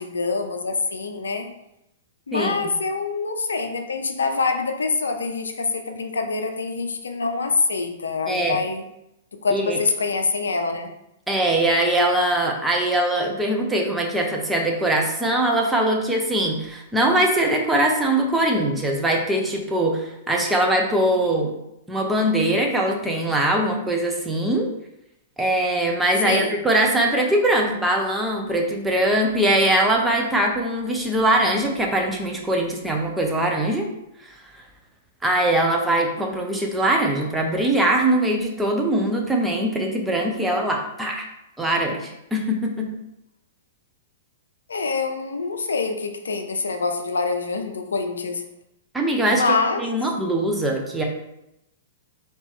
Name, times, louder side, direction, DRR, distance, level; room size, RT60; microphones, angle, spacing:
voice 1, 0.0-1.5 2.3-8.8 9.3-10.9 26.2-26.6 44.7-48.5 49.3-49.8, left 4 dB, 75° left, 6 dB, 0.5 m, -25 dB
voice 2, 8.3-8.6 9.5-9.8 11.3-21.5 21.9-24.7 25.4-33.8 34.2-34.3 35.2-41.3 41.6-42.9 48.9-49.4 49.8-51.0, right 1 dB, 5° right, 0 dB, 0.8 m, -22 dB
4.4 x 2.9 x 3.5 m, 0.85 s
figure-of-eight pair, 105°, 0 cm